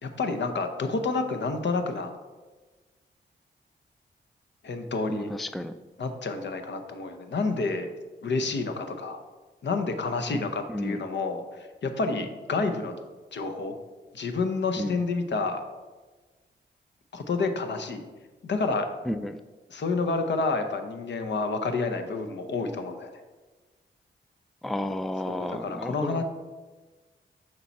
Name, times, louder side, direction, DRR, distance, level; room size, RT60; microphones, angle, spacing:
voice 1, 0.0-2.1 4.6-5.3 6.0-7.9 8.2-9.2 9.6-13.0 13.3-13.7 14.1-15.6 17.1-18.1 18.4-18.9 19.7-23.1 25.2-26.2, left 3 dB, 70° left, 7 dB, 0.8 m, -29 dB
voice 2, 5.1-5.7 10.7-11.0 14.8-14.9 19.1-19.4 24.6-26.2, left 1 dB, ahead, 10 dB, 0.3 m, -32 dB
6.7 x 4.6 x 4.2 m, 1.3 s
cardioid pair, 60°, 19 cm